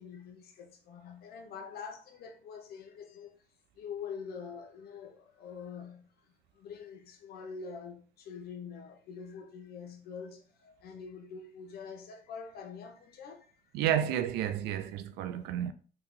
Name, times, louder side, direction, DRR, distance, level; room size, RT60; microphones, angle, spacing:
voice 1, 0.0-3.4 3.7-13.7, left 6 dB, 65° left, 0.9 m, -45 dB
voice 2, 13.7-15.7, right 10 dB, 90° right, 0.5 m, -31 dB
2.9 x 2.9 x 3.6 m
cardioid pair, 110°, 17 cm